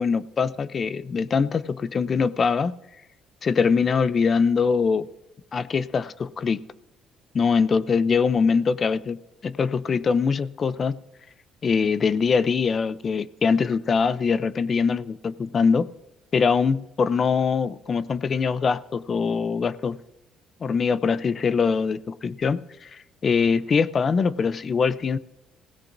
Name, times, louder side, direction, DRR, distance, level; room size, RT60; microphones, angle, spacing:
voice 1, 0.0-2.7 3.4-5.1 5.5-6.6 7.3-11.0 11.6-15.9 16.3-20.0 20.6-25.2, left 5 dB, 30° left, 16 dB, 0.5 m, -23 dB
27.0 x 16.5 x 2.6 m, 0.92 s
cardioid pair, 150°, 0 cm